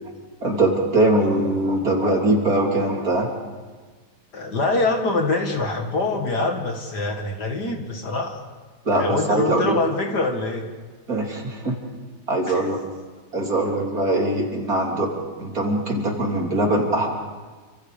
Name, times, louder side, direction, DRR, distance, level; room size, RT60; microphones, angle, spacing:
voice 1, 0.4-3.3 8.9-9.8 11.1-11.7 12.3-12.8 13.3-15.1 15.4-17.1, right 1 dB, 50° right, 0 dB, 4.0 m, -21 dB
voice 2, 4.3-8.4 8.9-10.7 12.5-12.7, left 3 dB, 65° left, 3 dB, 2.6 m, -24 dB
28.5 x 26.5 x 5.2 m, 1.4 s
omnidirectional pair, 1.9 m